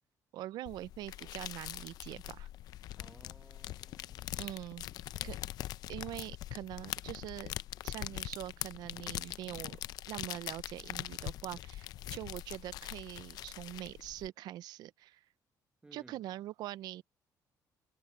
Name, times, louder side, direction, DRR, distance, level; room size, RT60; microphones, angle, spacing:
voice 1, 0.3-2.5 4.4-4.9 5.2-5.4 5.9-7.5 7.8-9.8 10.1-15.2 15.9-17.0, right 14 dB, 75° right, 0.5 m, -43 dB
sound 1, 0.7-14.3, left 14 dB, 70° left, 0.5 m, -43 dB
voice 2, 3.0-5.5 15.8-16.3, right 3 dB, 15° right, 1.3 m, -61 dB
cardioid pair, 150°, 7 cm